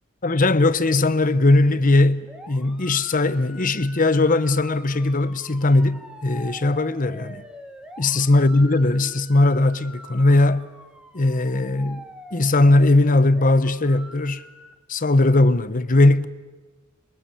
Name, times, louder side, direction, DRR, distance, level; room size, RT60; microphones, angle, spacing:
voice 1, 0.2-7.4 8.0-10.7 11.1-12.1 12.3-14.4 14.9-16.3, left 2 dB, 40° left, 0.9 m, -19 dB
sound 1, 2.3-14.7, equal, 5° right, 1.8 m, -44 dB
27.0 x 22.5 x 8.5 m
head